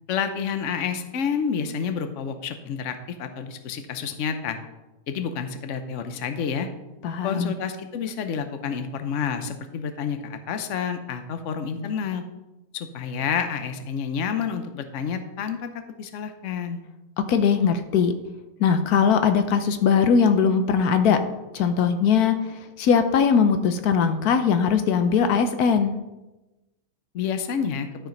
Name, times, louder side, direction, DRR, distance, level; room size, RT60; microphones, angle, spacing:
voice 1, 0.1-4.6 5.1-6.7 7.2-12.2 12.7-15.7 16.0-16.8 27.1-27.9, left 7 dB, 60° left, 8 dB, 1.1 m, -29 dB
voice 2, 7.0-7.5 17.3-18.1 18.6-21.2 21.5-22.4 22.8-25.9, left 6 dB, 85° left, 8 dB, 1.3 m, -20 dB
12.5 x 5.0 x 5.3 m, 1.0 s
omnidirectional pair, 1.6 m